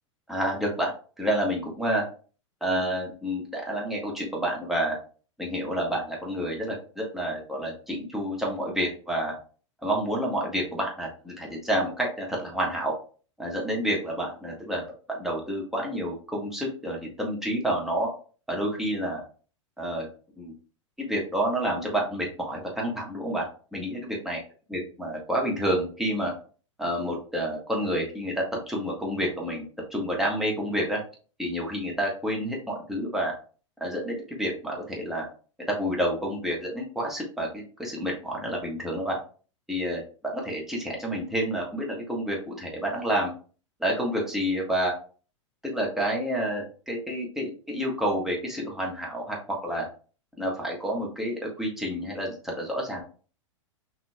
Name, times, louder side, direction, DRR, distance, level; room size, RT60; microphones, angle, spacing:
voice 1, 0.3-0.9 1.2-2.0 2.6-5.0 5.4-9.4 9.8-12.9 13.4-14.8 15.1-18.1 18.5-19.2 19.8-20.1 20.4-20.5 21.0-23.5 23.7-24.4 24.7-26.3 26.8-31.0 31.4-33.3 33.8-35.2 35.7-39.2 39.7-43.3 43.8-44.9 45.6-49.9 50.4-53.0, equal, ahead, -2 dB, 1.4 m, -29 dB
5.8 x 2.9 x 2.3 m, 0.39 s
figure-of-eight pair, 95°, 16 cm